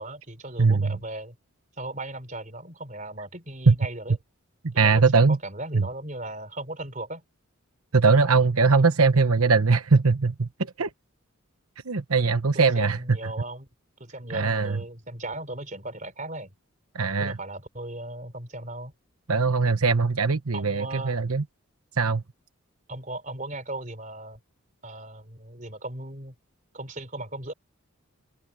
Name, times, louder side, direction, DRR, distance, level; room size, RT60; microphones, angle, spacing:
voice 1, 0.0-1.4 1.8-4.2 4.7-7.2 12.5-13.7 14.0-16.5 17.2-18.9 20.5-21.2 22.9-24.4 24.8-26.3 26.7-27.5, right 2 dB, 35° right, 3.9 m, -37 dB
voice 2, 0.6-1.0 3.7-3.8 4.6-5.4 5.7-5.8 7.9-10.5 10.8-10.9 11.8-13.2 14.3-14.8 16.9-17.4 19.3-21.4 22.0-22.2, right 4 dB, 85° right, 1.1 m, -21 dB
head